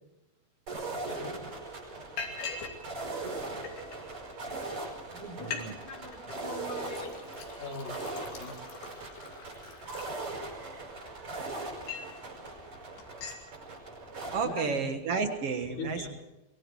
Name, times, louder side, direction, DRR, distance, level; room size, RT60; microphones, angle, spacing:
sound 1, 0.7-14.4, right 2 dB, 40° right, 6.6 m, -40 dB
voice 1, 0.9-1.4 5.1-7.2 7.6-8.6 14.4-14.8 15.7-16.1, left 2 dB, 70° left, -3 dB, 5.6 m, -41 dB
Liquid, 1.0-1.1 1.4-1.7 2.2-2.8 3.1-4.0 4.6-4.7 5.0-5.1 5.4-5.7 5.9-6.4 6.8-10.6 11.2-12.2 12.6-12.7 13.0-13.4, left 5 dB, 85° left, 4.7 m, -42 dB
voice 2, 5.4-5.8 10.0-11.7 14.3-16.1, right 5 dB, 55° right, 7 dB, 1.9 m, -34 dB
24.0 x 23.0 x 4.8 m, 1.0 s
omnidirectional pair, 4.3 m